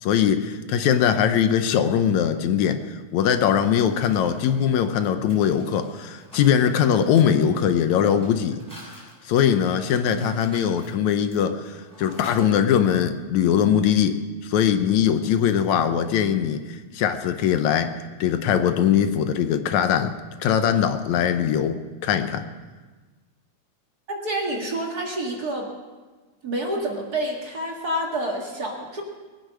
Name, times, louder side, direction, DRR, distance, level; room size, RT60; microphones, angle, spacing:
voice 1, 0.0-2.8 3.1-8.6 9.3-11.7 12.0-17.9 18.2-20.1 20.4-21.8 22.0-22.4, left 8 dB, 85° left, 9 dB, 2.2 m, -21 dB
Mechanisms, 3.2-13.0, equal, ahead, 5.9 m, -48 dB
voice 2, 24.1-25.7 26.4-29.0, right 1 dB, 35° right, -1 dB, 2.0 m, -28 dB
21.0 x 9.2 x 6.3 m, 1.3 s
omnidirectional pair, 3.3 m